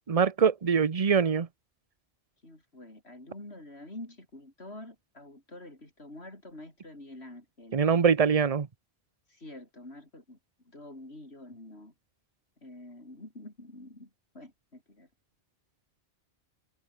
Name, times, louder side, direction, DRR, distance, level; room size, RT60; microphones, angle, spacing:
voice 1, 0.1-1.5 7.7-8.7, right 6 dB, 35° right, 0.9 m, -23 dB
voice 2, 2.4-7.8 9.3-10.4 10.6-11.9 12.6-15.1, left 1 dB, 65° left, 6.2 m, -47 dB
omnidirectional pair, 1.2 m